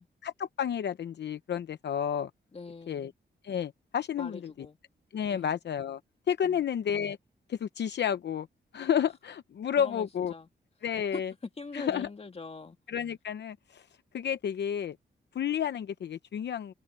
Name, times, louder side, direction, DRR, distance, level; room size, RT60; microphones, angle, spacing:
voice 1, 0.2-2.3 2.9-3.1 3.4-4.7 5.1-6.0 6.3-7.2 7.5-8.5 8.7-10.3 10.8-11.3 11.7-12.1 12.9-13.9 14.1-15.0 15.3-16.7, left 8 dB, 70° left, 0.8 m, -31 dB
voice 2, 2.5-3.1 4.2-4.8 5.3-5.6 6.4-6.6 9.8-10.5 11.1-11.2 11.6-12.8, left 3 dB, 35° left, 2.3 m, -42 dB
cardioid pair, 95°, 19 cm